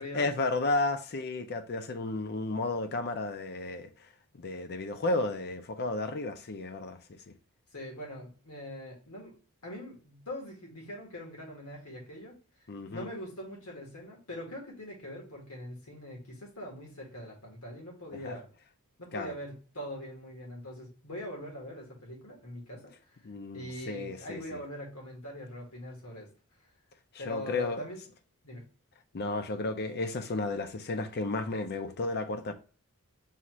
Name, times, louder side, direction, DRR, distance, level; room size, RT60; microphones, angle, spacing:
voice 1, 0.1-4.1 4.3-7.3 12.7-13.1 18.1-18.4 19.1-19.3 23.2-24.6 27.1-27.8 29.1-32.5, left 2 dB, 45° left, 0.5 m, -33 dB
voice 2, 7.7-9.3 9.6-12.4 12.9-18.5 19.0-22.9 23.5-26.3 27.2-28.0 28.4-28.7, equal, 75° left, 1.7 m, -42 dB
5.6 x 2.5 x 3.0 m
head